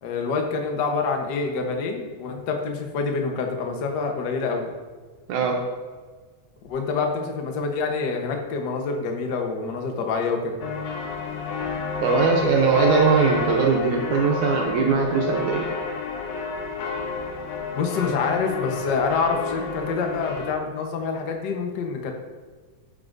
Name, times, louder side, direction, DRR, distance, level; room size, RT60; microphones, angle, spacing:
voice 1, 0.0-4.7 6.7-10.6 17.7-22.1, left 4 dB, 60° left, 3 dB, 1.1 m, -26 dB
voice 2, 5.3-5.6 12.0-15.7, right 4 dB, 80° right, 1 dB, 2.3 m, -20 dB
sound 1, 10.6-20.5, left 4 dB, 85° left, 2.5 m, -30 dB
13.0 x 7.4 x 2.6 m, 1.4 s
omnidirectional pair, 3.4 m